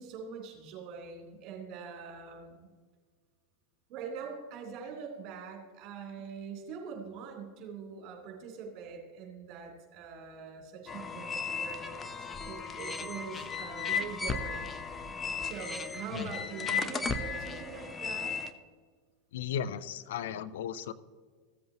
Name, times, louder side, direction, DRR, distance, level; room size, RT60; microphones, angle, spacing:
voice 1, 0.0-2.7 3.9-14.7 15.4-18.4, right 6 dB, 45° right, 0 dB, 3.2 m, -43 dB
sound 1, 10.9-18.5, left 5 dB, 20° left, 0.7 m, -35 dB
voice 2, 19.3-20.9, left 8 dB, 65° left, 15 dB, 0.4 m, -36 dB
15.0 x 7.7 x 2.9 m, 1.5 s
figure-of-eight pair, 90°, 0 cm